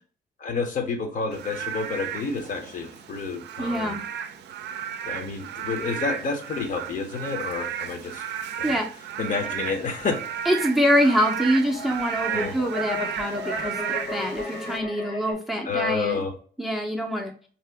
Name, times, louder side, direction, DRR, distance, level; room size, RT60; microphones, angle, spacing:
voice 1, 0.4-4.0 5.1-8.2 8.6-8.8 9.2-10.2 12.3-12.6 15.6-16.3, left 4 dB, 45° left, 5 dB, 0.7 m, -29 dB
Frog / Rain, 1.3-14.8, right 9 dB, 80° right, 0.4 m, -34 dB
voice 2, 3.6-4.0 8.6-8.9 10.5-16.2 16.6-17.3, equal, ahead, 2 dB, 0.5 m, -25 dB
sound 1, 9.7-15.3, left 3 dB, 65° left, 1.3 m, -36 dB
2.8 x 2.4 x 3.3 m, 0.43 s
cardioid pair, 140°, 18 cm